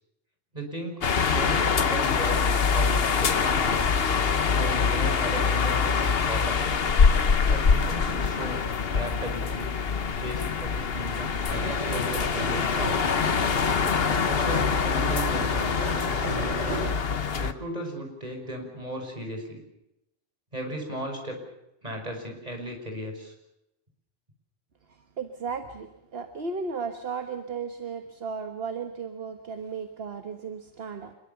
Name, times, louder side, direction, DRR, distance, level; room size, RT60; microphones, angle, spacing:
voice 1, 0.5-4.0 4.5-6.7 7.5-8.6 8.9-9.7 10.2-13.1 14.1-16.8 17.4-19.6 20.5-21.4 21.8-23.3, right 1 dB, 30° right, 3 dB, 6.2 m, -36 dB
sound 1, 1.0-17.5, left 5 dB, 55° left, 1.2 m, -24 dB
sound 2, 11.5-16.9, right 1 dB, 70° right, 8.0 m, -34 dB
voice 2, 24.9-31.1, right 5 dB, 55° right, 7 dB, 1.6 m, -35 dB
26.5 x 22.0 x 7.0 m, 0.86 s
omnidirectional pair, 1.3 m